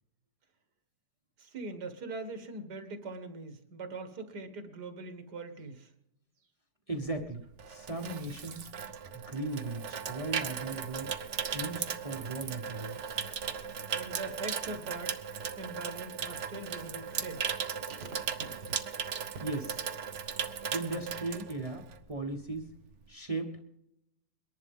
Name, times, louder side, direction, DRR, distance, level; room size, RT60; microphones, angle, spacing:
voice 1, 1.4-5.9 13.9-15.2 15.6-17.5 17.9-18.7, right 3 dB, 70° right, 8 dB, 1.9 m, -42 dB
voice 2, 6.9-7.4 7.7-8.7 9.1-11.1 11.5-13.2 19.4-19.7 20.7-22.7 23.1-23.7, right 2 dB, 25° right, 4 dB, 1.0 m, -37 dB
Water tap faucet / Sink (filling or washing), 7.1-22.1 22.4-22.7, right 7 dB, 55° right, 1.0 m, -37 dB
23.0 x 11.0 x 3.6 m, 0.81 s
omnidirectional pair, 1.8 m